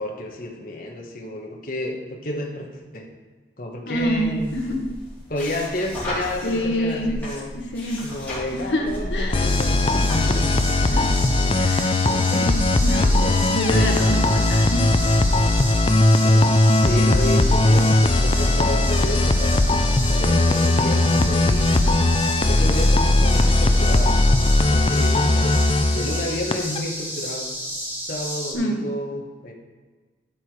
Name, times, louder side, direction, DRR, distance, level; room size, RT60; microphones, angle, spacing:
voice 1, 0.0-3.1 3.6-4.5 5.3-7.5 8.0-10.5 10.9-11.1 11.4-11.6 12.0-12.3 12.9-13.5 16.2-16.5 16.8-19.6 20.1-22.0 22.5-24.2 24.7-25.6 25.9-27.5 28.1-29.5, left 1 dB, 50° left, 0 dB, 1.3 m, -31 dB
voice 2, 3.9-4.9 6.4-7.1 7.5-8.1 8.5-9.4 10.9-11.0 11.6-11.9 12.3-14.8 28.5-28.9, equal, 75° left, 2 dB, 1.3 m, -26 dB
sound 1, 3.9-10.8, left 1 dB, 10° left, 2.9 m, -34 dB
sound 2, 9.3-26.8, left 2 dB, 30° left, 0.4 m, -18 dB
sound 3, 9.4-28.5, equal, 15° right, 1.6 m, -32 dB
12.5 x 4.8 x 4.8 m, 1.4 s
head